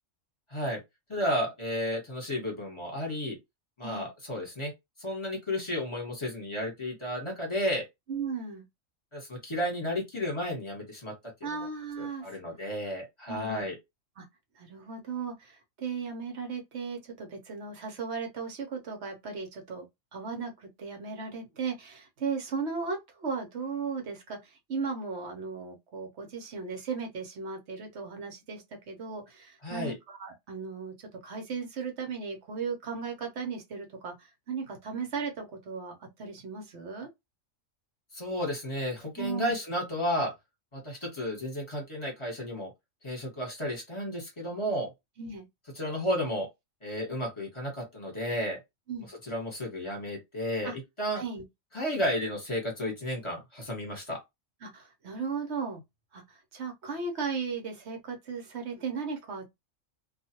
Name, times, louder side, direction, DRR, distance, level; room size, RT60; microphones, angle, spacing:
voice 1, 1.1-3.4 3.8-4.7 5.0-7.8 9.1-11.1 11.4-11.6 12.0-13.8 29.6-30.0 38.1-40.3 40.7-42.7 43.0-44.9 45.7-46.5 46.8-48.6 49.2-51.2 51.7-54.2, equal, 25° left, 1.2 m, -32 dB
voice 2, 8.1-8.6 11.4-12.3 13.3-13.7 14.2-14.3 14.6-19.9 20.1-37.1 39.2-39.5 45.2-45.4 48.9-49.1 50.6-50.7 51.1-51.4 54.6-55.8 56.1-59.5, right 5 dB, 60° right, 1.0 m, -36 dB
2.4 x 2.4 x 2.8 m
omnidirectional pair, 1.4 m